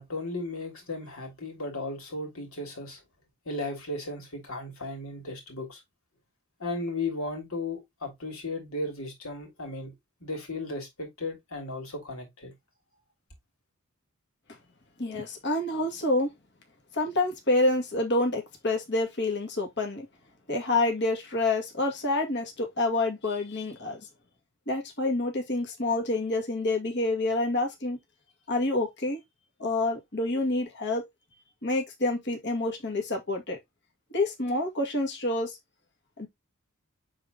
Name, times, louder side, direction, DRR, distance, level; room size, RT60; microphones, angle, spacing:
voice 1, 0.0-3.0 3.4-5.8 6.6-9.9 10.2-12.5, left 2 dB, 80° left, 3.0 m, -35 dB
voice 2, 15.0-16.3 16.9-20.1 20.5-24.0 24.7-28.0 28.5-29.2 29.6-31.1 31.6-33.6 34.1-35.6 36.2-36.3, left 2 dB, 55° left, 2.0 m, -28 dB
6.8 x 4.0 x 3.7 m
head